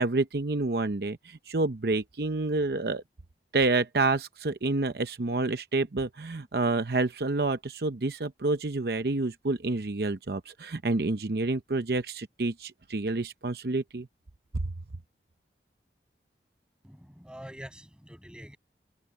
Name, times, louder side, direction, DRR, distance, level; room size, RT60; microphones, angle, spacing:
voice 1, 0.0-3.0 3.5-14.1, right 3 dB, 65° right, 0.8 m, -28 dB
voice 2, 16.8-18.6, equal, 5° right, 6.7 m, -45 dB
open air
head